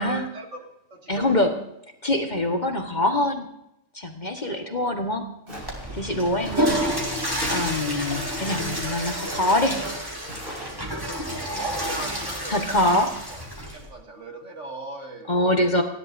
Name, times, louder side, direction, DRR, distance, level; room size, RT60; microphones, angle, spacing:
voice 1, 0.0-1.4 4.6-4.9 6.5-6.8 11.4-13.0 13.3-13.4 13.7-15.3, right 2 dB, 65° right, 2 dB, 2.6 m, -38 dB
voice 2, 1.1-1.5 2.0-3.5 3.9-5.3 5.9-6.7 7.5-9.8 12.5-13.1 15.3-15.8, left 1 dB, 35° left, 3 dB, 1.6 m, -24 dB
Water / Toilet flush, 5.5-13.9, equal, 15° right, 3.4 m, -29 dB
Walk footsteps, 5.5-5.9 6.4-6.9 7.4-7.9 8.3-8.8 9.3-9.7 10.3-10.7, right 1 dB, 40° right, 5.5 m, -39 dB
29.5 x 11.5 x 2.7 m, 0.83 s
omnidirectional pair, 1.4 m